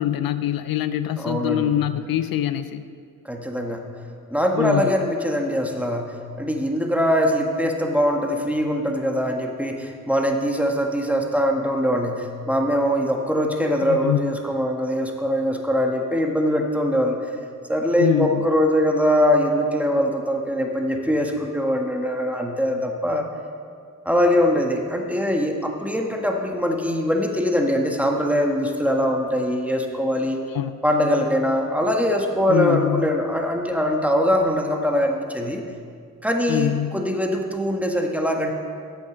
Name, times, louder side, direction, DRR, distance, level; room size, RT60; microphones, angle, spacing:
voice 1, 0.0-2.8 4.5-4.9 13.9-14.3 18.0-18.4 30.5-30.7 32.5-33.1 36.5-37.0, left 11 dB, 80° left, 12 dB, 0.5 m, -24 dB
voice 2, 1.2-1.7 3.2-3.8 4.3-17.2 17.7-23.3 24.0-30.4 30.8-35.6 36.2-38.5, equal, 5° right, 2 dB, 1.5 m, -22 dB
8.0 x 8.0 x 6.3 m, 2.2 s
cardioid pair, 50°, 35 cm